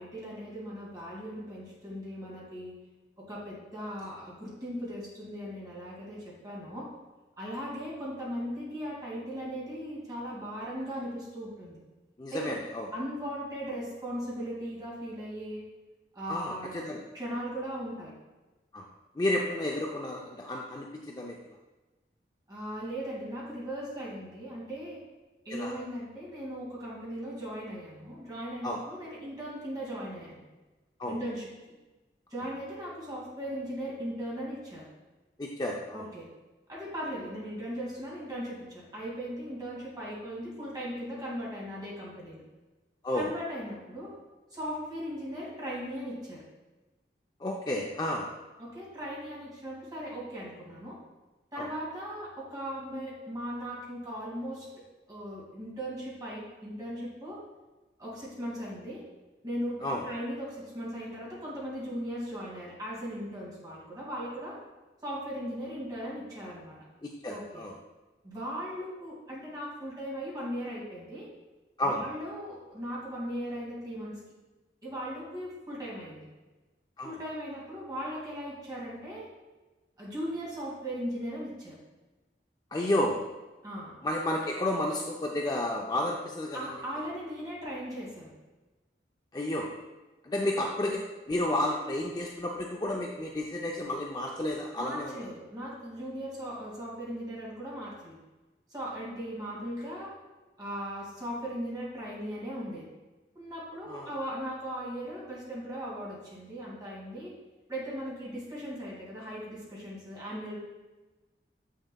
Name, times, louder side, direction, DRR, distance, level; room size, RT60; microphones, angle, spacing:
voice 1, 0.0-2.7 3.2-6.9 7.4-11.8 12.3-12.6 12.9-15.6 16.1-16.7 17.1-18.1 22.5-25.0 25.4-30.4 31.1-31.5 32.3-34.9 35.9-36.3 36.7-42.4 43.1-44.1 44.5-46.4 48.6-51.0 51.5-54.7 55.1-57.4 58.0-59.0 59.4-64.6 65.0-66.8 67.3-67.6 68.2-71.3 71.8-74.2 74.8-76.3 77.0-79.3 80.0-81.8 83.6-83.9 86.5-88.3 94.8-98.2 98.7-100.1 100.6-102.9 103.3-107.3 107.7-110.6, equal, 20° right, -6 dB, 2.1 m, -38 dB
voice 2, 12.2-12.9 16.3-17.0 18.7-18.9 19.2-21.4 25.5-25.7 28.6-28.8 31.0-31.1 35.4-36.1 43.0-43.3 47.4-48.3 51.6-51.7 59.8-60.0 67.0-67.7 71.8-72.1 77.0-77.1 82.7-83.2 84.0-86.7 89.3-89.7 90.2-95.2 103.9-104.1, left 1 dB, 25° left, 0 dB, 0.4 m, -31 dB
7.3 x 6.4 x 2.2 m, 1.2 s
head